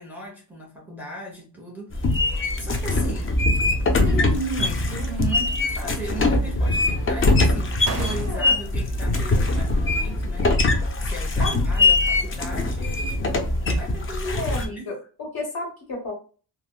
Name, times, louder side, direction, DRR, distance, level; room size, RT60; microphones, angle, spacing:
voice 1, 0.0-3.4 3.8-10.5 11.0-13.2 13.7-14.9, right 1 dB, 5° right, -4 dB, 0.9 m, -36 dB
sound 1, 1.9-14.7, left 2 dB, 30° left, 0.4 m, -22 dB
sound 2, 4.0-4.6 4.9-5.7 6.0-6.8 7.4-7.5 7.8-8.8, right 5 dB, 35° right, 0.4 m, -39 dB
voice 2, 8.3-8.6 11.4-11.5 14.4-16.1, left 2 dB, 55° left, -1 dB, 1.2 m, -32 dB
3.4 x 2.0 x 2.3 m, 0.38 s
wide cardioid pair, 140°, 44 cm